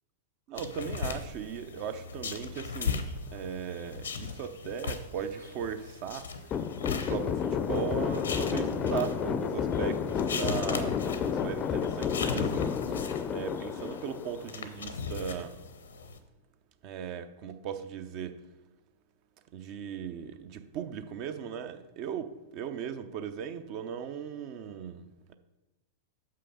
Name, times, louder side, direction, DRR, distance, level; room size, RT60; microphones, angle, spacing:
voice 1, 0.5-6.6 7.1-15.6 16.8-18.4 19.5-25.3, right 8 dB, 50° right, 0.6 m, -38 dB
page flip in notebook, 0.6-16.2, left 5 dB, 85° left, 0.7 m, -38 dB
sound 1, 6.5-14.8, left 7 dB, 35° left, 0.4 m, -31 dB
6.8 x 5.7 x 4.9 m
hypercardioid pair, 100°, 0 cm